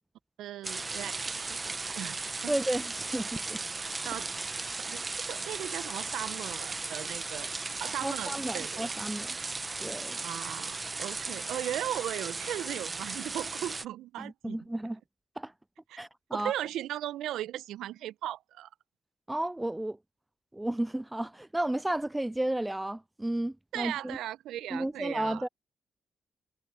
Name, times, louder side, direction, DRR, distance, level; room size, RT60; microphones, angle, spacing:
voice 1, 0.4-2.5 3.8-4.3 4.7-7.5 7.8-8.9 10.2-14.6 15.9-16.0 16.3-18.7 23.7-25.5, right 13 dB, 75° right, 1.0 m, -37 dB
sound 1, 0.6-13.9, right 3 dB, 35° right, 1.4 m, -36 dB
voice 2, 2.5-3.6 8.0-9.4 9.8-10.2 14.2-15.0 15.4-15.5 16.0-16.5 19.3-20.0 20.5-24.2 24.7-25.5, right 1 dB, 15° right, 0.3 m, -33 dB
hypercardioid pair, 40°, 0 cm